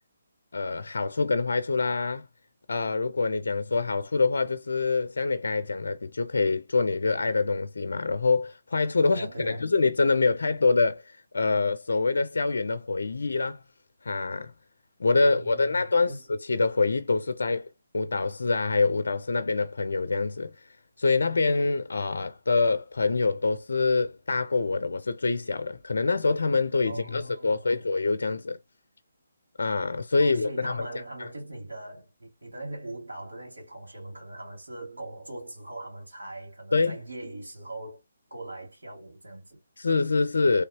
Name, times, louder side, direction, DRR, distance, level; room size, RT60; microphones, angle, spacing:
voice 1, 0.5-2.2 2.7-13.6 14.0-14.5 15.0-17.7 17.9-20.5 21.0-28.6 29.6-30.9 36.7-37.0 39.8-40.6, left 3 dB, 70° left, 0.4 m, -25 dB
voice 2, 9.1-9.7 15.2-16.2 26.8-27.9 30.1-38.0 38.3-39.6, right 2 dB, 85° right, 2.1 m, -40 dB
3.3 x 2.7 x 2.7 m
figure-of-eight pair, 150°, 0 cm